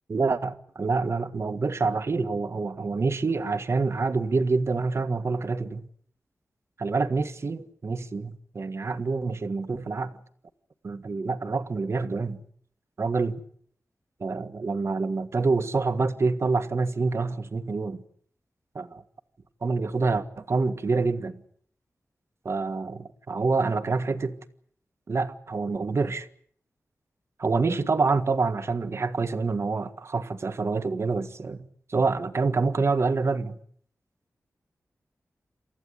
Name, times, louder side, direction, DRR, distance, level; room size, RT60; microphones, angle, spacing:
voice 1, 0.1-5.9 6.8-10.1 10.8-12.4 13.0-13.4 14.2-18.0 18.8-19.0 19.6-21.4 22.5-24.4 25.1-26.3 27.4-33.6, right 4 dB, 55° right, 1.7 m, -27 dB
28.5 x 14.0 x 9.5 m
wide cardioid pair, 95°, 5 cm